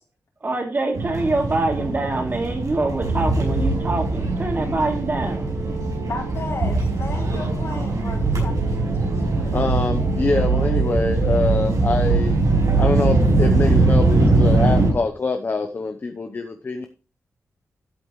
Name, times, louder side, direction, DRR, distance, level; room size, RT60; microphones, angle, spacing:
voice 1, 0.4-5.5, right 2 dB, 35° right, 1 dB, 2.9 m, -25 dB
sound 1, 0.9-14.9, right 3 dB, 85° right, 5.4 m, -21 dB
voice 2, 5.7-9.5, left 3 dB, 55° left, -1 dB, 4.2 m, -34 dB
voice 3, 9.5-12.4 12.8-16.8, left 3 dB, 35° left, 5 dB, 0.8 m, -24 dB
13.0 x 8.3 x 3.1 m, 0.34 s
wide cardioid pair, 120°, 6 cm